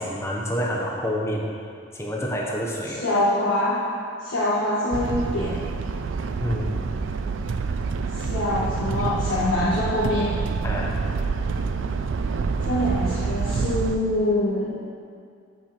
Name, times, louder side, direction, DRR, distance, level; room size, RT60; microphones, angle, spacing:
voice 1, 0.0-1.5 1.9-3.0 6.4-6.7 10.6-11.0, equal, 15° left, -2 dB, 0.8 m, -28 dB
voice 2, 3.0-3.8 4.2-5.6 8.1-10.4 12.6-14.7, left 1 dB, 80° left, -9 dB, 1.3 m, -24 dB
sound 1, 4.9-14.0, right 4 dB, 70° right, 0.4 m, -27 dB
7.9 x 4.4 x 5.9 m, 2.4 s
head